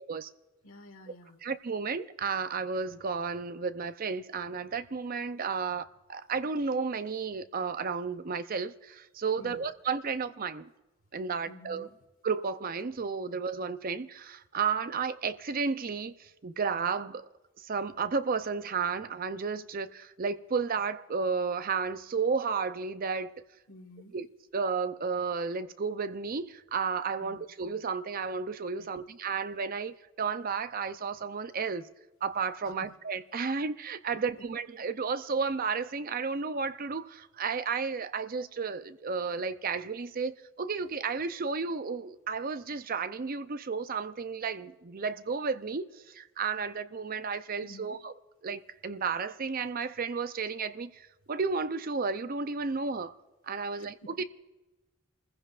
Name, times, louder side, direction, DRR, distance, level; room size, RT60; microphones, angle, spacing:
voice 1, 0.6-1.4 9.3-9.6 11.4-11.9 23.7-24.2 27.2-27.4 28.8-28.9 32.6-32.9 34.1-34.2 47.6-48.0 53.7-54.1, left 1 dB, 85° left, 1.7 m, -50 dB
voice 2, 1.4-10.7 11.1-11.9 12.2-17.3 17.6-23.4 24.1-24.3 24.5-31.9 32.2-48.1 48.4-53.1 53.4-54.2, right 5 dB, 45° right, 0.5 m, -33 dB
29.5 x 15.5 x 2.5 m
head